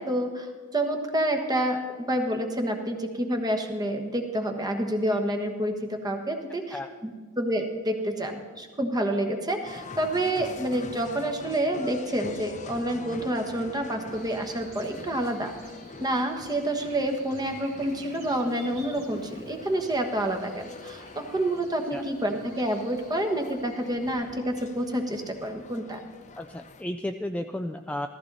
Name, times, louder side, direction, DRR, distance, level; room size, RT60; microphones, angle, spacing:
voice 1, 0.0-7.1 7.4-15.5 16.0-26.0, right 1 dB, 20° right, 5 dB, 1.3 m, -28 dB
sound 1, 9.6-26.8, left 3 dB, 35° left, 0.7 m, -45 dB
Buzz, 14.1-24.1, right 1 dB, 70° right, 2.8 m, -49 dB
voice 2, 26.4-28.1, left 1 dB, 5° left, 5 dB, 0.3 m, -33 dB
14.5 x 14.5 x 4.1 m, 1.5 s
head